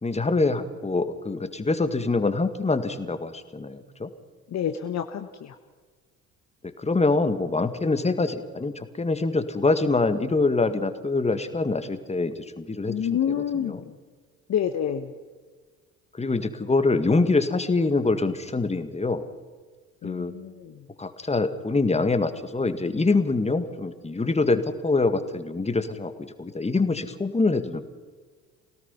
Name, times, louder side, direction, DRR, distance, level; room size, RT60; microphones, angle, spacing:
voice 1, 0.0-4.1 6.8-13.8 16.1-19.2 20.0-20.3 21.0-27.8, left 3 dB, 15° left, 9 dB, 2.0 m, -25 dB
voice 2, 4.5-5.6 12.9-13.9 14.5-15.1 20.0-20.8, left 9 dB, 40° left, 7 dB, 1.3 m, -28 dB
25.0 x 18.0 x 5.7 m, 1.4 s
figure-of-eight pair, 55°, 42 cm